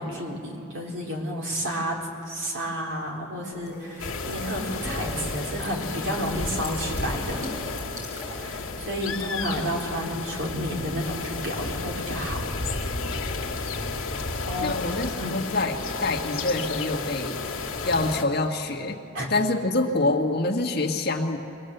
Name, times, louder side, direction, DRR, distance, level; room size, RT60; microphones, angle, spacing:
voice 1, 0.0-2.0 2.3-7.5 8.3-12.4 14.4-14.9 15.2-15.5 19.1-19.3, equal, 60° right, -2 dB, 3.7 m, -31 dB
sound 1, 3.5-9.2, equal, 20° right, 7.9 m, -41 dB
sound 2, 4.0-18.2, left 3 dB, 75° left, 1.8 m, -32 dB
voice 2, 14.6-17.4 17.8-19.0 19.3-21.4, left 2 dB, 45° left, 0 dB, 1.6 m, -26 dB
24.0 x 17.5 x 7.9 m, 2.6 s
head